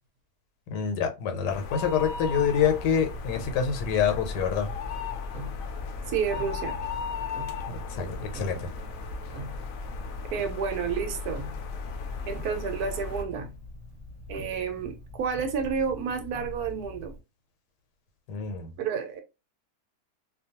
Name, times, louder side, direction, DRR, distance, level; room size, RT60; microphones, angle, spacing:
voice 1, 0.7-4.7 7.7-8.7 18.3-18.7, left 7 dB, 85° left, 1.3 m, -27 dB
sound 1, 1.5-13.2, left 5 dB, 70° left, 0.8 m, -36 dB
Tick-tock, 2.0-17.2, left 2 dB, 25° right, 0.9 m, -43 dB
voice 2, 6.1-6.8 10.3-11.4 12.3-13.5 14.3-17.1 18.8-19.2, right 6 dB, 70° right, 1.0 m, -30 dB
2.6 x 2.3 x 2.8 m
omnidirectional pair, 1.8 m